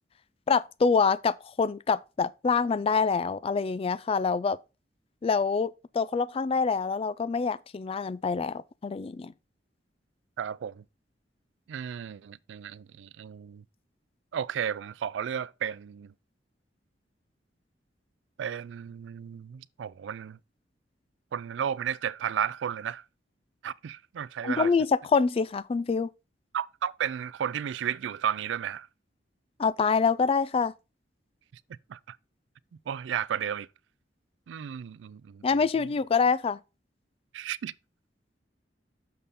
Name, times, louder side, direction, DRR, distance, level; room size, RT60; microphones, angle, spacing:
voice 1, 0.5-4.6 5.2-5.7 5.9-9.3 24.4-24.9 25.1-26.1 29.6-30.7 35.4-36.6, left 5 dB, 30° left, 0.3 m, -26 dB
voice 2, 10.4-10.8 11.7-13.6 14.3-16.1 18.4-20.4 21.3-23.0 23.6-24.7 26.5-28.9 31.9-32.2 32.9-33.7 34.5-35.4 35.8-35.9 37.3-37.7, right 8 dB, 90° right, 0.3 m, -33 dB
6.7 x 5.6 x 4.1 m
head